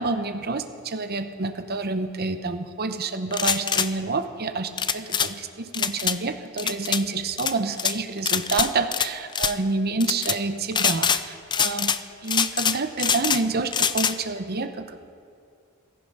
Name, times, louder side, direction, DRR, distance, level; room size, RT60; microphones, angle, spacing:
voice 1, 0.0-11.9 12.2-15.0, right 3 dB, 50° right, 9 dB, 0.9 m, -28 dB
sound 1, 3.3-3.9 4.8-5.3 5.7-6.2 6.6-7.0 7.4-7.9 8.3-9.1 9.3-9.5 10.0-10.4 10.7-11.2 11.5-12.0 12.3-13.4 13.7-14.1, left 7 dB, 20° left, 0.4 m, -24 dB
15.0 x 14.5 x 5.5 m, 2.4 s
head